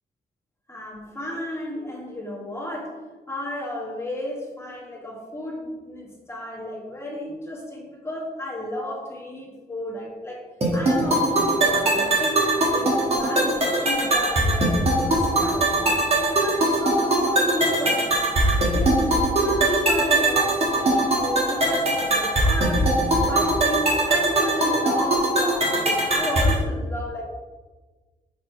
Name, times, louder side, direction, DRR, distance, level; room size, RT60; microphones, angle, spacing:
voice 1, 0.7-3.0 3.3-12.4 12.7-19.2 19.4-22.9 23.3-27.2, left 1 dB, 15° left, -3 dB, 1.4 m, -33 dB
sound 1, 10.6-26.6, right 1 dB, 40° right, 1.5 m, -21 dB
7.0 x 3.9 x 4.4 m, 1.2 s
wide cardioid pair, 150°, 16 cm